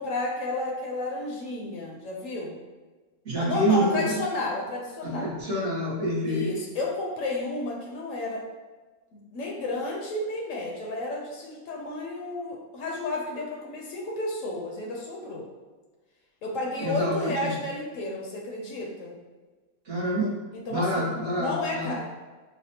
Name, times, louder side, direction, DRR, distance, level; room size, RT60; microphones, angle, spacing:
voice 1, 0.0-2.6 3.4-5.3 6.2-8.4 9.1-15.5 16.4-19.2 20.5-21.1 21.3-22.1, left 2 dB, 65° left, -1 dB, 0.9 m, -32 dB
voice 2, 3.2-4.2 5.0-6.5 16.8-17.5 19.9-20.3 20.7-21.9, equal, 55° right, -5 dB, 0.9 m, -27 dB
5.7 x 2.0 x 2.8 m, 1.3 s
omnidirectional pair, 1.6 m